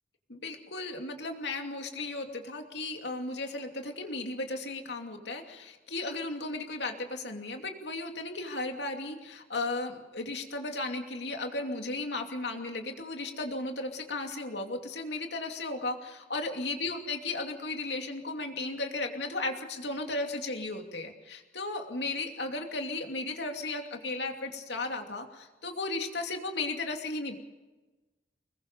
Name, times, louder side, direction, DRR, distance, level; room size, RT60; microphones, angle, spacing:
voice 1, 0.3-27.4, left 2 dB, 70° left, 4 dB, 2.7 m, -35 dB
25.0 x 21.0 x 5.4 m, 1.2 s
head